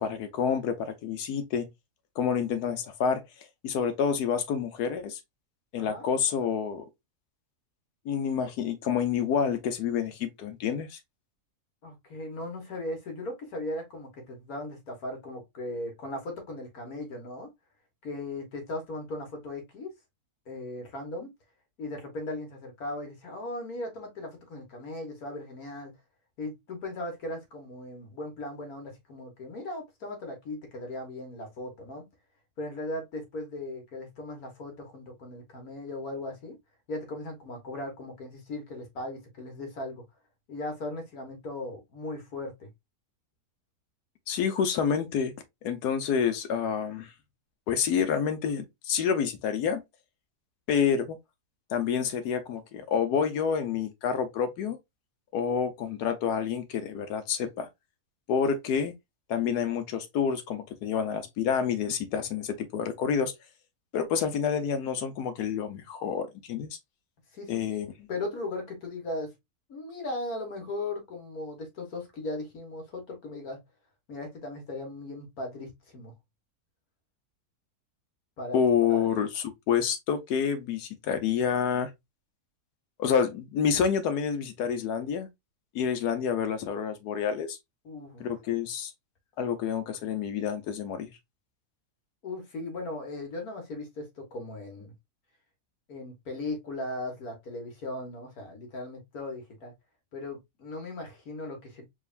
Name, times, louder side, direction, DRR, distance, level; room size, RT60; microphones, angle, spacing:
voice 1, 0.0-1.7 2.2-3.2 3.6-5.2 5.7-6.8 8.0-11.0 44.3-45.3 45.6-47.1 47.7-49.8 50.7-51.2 51.7-54.8 55.3-57.7 58.3-58.9 59.3-63.3 63.9-66.7 67.5-67.9 78.5-81.9 83.0-85.3 85.7-87.6 88.2-88.9 89.4-91.1, left 7 dB, 85° left, 1.3 m, -28 dB
voice 2, 5.8-6.1 11.8-17.5 18.0-19.9 20.5-21.3 21.8-25.9 26.4-32.1 32.6-36.6 36.9-40.0 40.5-42.7 67.3-69.3 69.7-73.6 74.1-76.1 78.4-79.1 87.8-88.3 92.2-94.9 95.9-99.7 100.1-101.8, left 2 dB, 70° left, 1.8 m, -38 dB
4.9 x 2.9 x 2.5 m
omnidirectional pair, 1.6 m